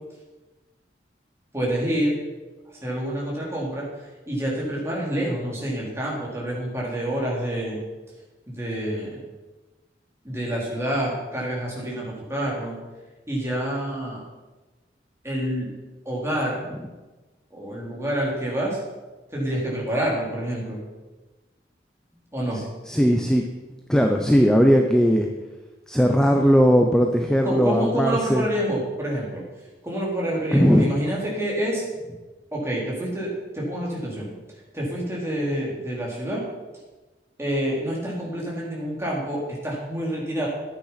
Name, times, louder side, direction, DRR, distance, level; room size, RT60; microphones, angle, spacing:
voice 1, 1.5-2.1 2.7-7.8 8.5-9.2 10.2-12.8 13.3-14.2 15.2-15.7 16.1-16.6 17.5-18.8 19.3-20.8 22.3-22.6 27.4-29.4 29.8-31.9 32.5-34.3 34.7-36.4 37.4-40.5, right 1 dB, 15° right, -4 dB, 3.9 m, -27 dB
voice 2, 22.5-23.4 23.9-25.3 25.9-28.4 30.5-30.9, equal, 5° left, 3 dB, 0.8 m, -18 dB
13.5 x 9.2 x 5.8 m, 1.2 s
head